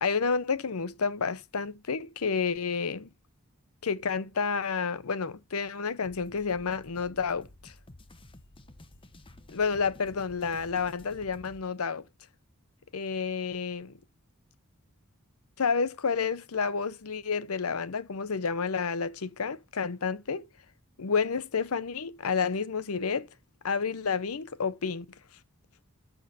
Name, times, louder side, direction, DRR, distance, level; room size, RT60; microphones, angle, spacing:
voice 1, 0.0-3.1 3.8-7.7 9.5-12.0 12.9-13.9 15.6-20.5 21.0-23.3 23.6-25.1, left 5 dB, 80° left, 0.7 m, -30 dB
sound 1, 6.0-11.6, left 1 dB, 25° left, 0.9 m, -52 dB
13.0 x 6.3 x 2.7 m
head